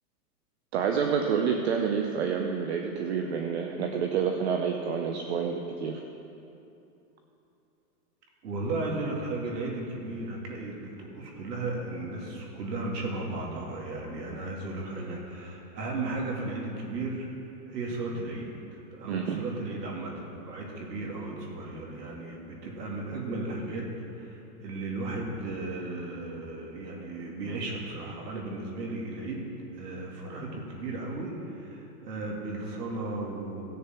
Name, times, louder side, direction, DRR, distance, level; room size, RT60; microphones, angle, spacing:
voice 1, 0.7-6.0 19.1-19.4, right 6 dB, 45° right, 3 dB, 0.7 m, -28 dB
voice 2, 8.4-17.3 17.7-23.9 24.1-29.5 29.7-33.6, right 2 dB, 80° right, -1 dB, 2.6 m, -35 dB
17.5 x 6.7 x 4.5 m, 2.8 s
supercardioid pair, 165°, 48 cm